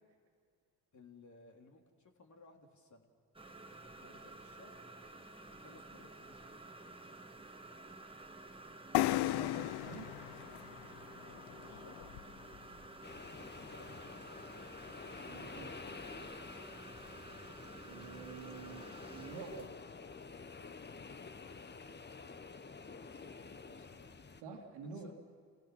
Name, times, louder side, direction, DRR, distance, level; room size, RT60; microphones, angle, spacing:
voice 1, 0.9-3.1 3.9-4.8 5.6-6.7 10.4-10.7 11.1-12.0 13.5-14.7 21.1-21.5 23.1-24.4 24.9-25.1, left 3 dB, 45° left, 2 dB, 3.3 m, -61 dB
sound 1, 3.3-19.7, right 2 dB, 15° right, 1.7 m, -52 dB
sound 2, 8.9-12.6, left 16 dB, 75° left, 0.6 m, -36 dB
voice 2, 9.2-10.1 15.2-15.8 17.8-19.7 24.4-25.1, right 5 dB, 90° right, 2 dB, 2.4 m, -48 dB
sound 3, 13.0-24.4, left 4 dB, 25° left, 1.1 m, -49 dB
28.0 x 16.5 x 6.2 m, 2.2 s
supercardioid pair, 60°, 39 cm